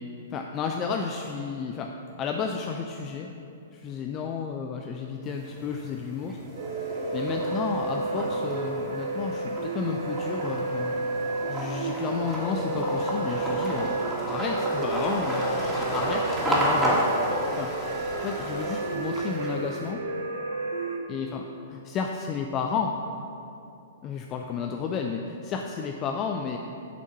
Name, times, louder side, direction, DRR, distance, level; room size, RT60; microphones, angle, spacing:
voice 1, 0.3-1.9 2.2-3.3 3.7-6.4 7.1-11.0 11.5-14.0 14.2-17.0 17.6-17.7 18.2-20.0 21.1-21.4 21.7-23.0 24.0-26.6, left 6 dB, 25° left, 3 dB, 0.5 m, -32 dB
sound 1, 5.3-5.9 6.3-19.8, equal, 10° right, 2.5 m, -31 dB
sound 2, 6.6-21.0, right 3 dB, 60° right, 0.9 m, -32 dB
8.4 x 7.1 x 5.7 m, 2.7 s
figure-of-eight pair, 110°, 0 cm